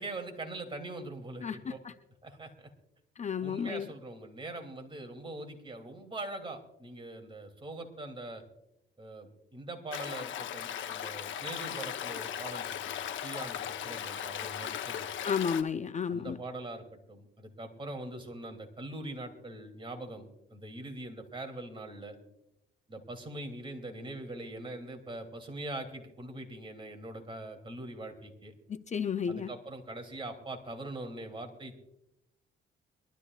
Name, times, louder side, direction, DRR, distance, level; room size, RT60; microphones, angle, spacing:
voice 1, 0.0-1.8 2.2-2.7 3.4-8.4 9.0-15.1 16.1-22.2 22.9-28.5 29.3-31.8, right 2 dB, 25° right, 4 dB, 2.7 m, -42 dB
voice 2, 1.4-1.9 3.2-3.9 15.2-16.4 28.7-29.5, left 7 dB, 35° left, 11 dB, 0.5 m, -32 dB
Stream, 9.9-15.6, left 9 dB, 75° left, 0.9 m, -37 dB
24.0 x 12.5 x 2.4 m, 0.83 s
cardioid pair, 90°, 20 cm